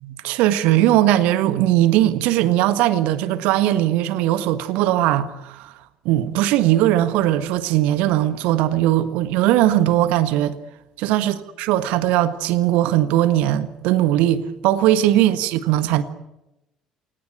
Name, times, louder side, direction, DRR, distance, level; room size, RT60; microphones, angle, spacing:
voice 1, 0.0-5.7 6.0-10.5 11.0-16.0, right 13 dB, 60° right, 1.6 m, -19 dB
28.5 x 18.5 x 9.2 m
figure-of-eight pair, 55°, 3 cm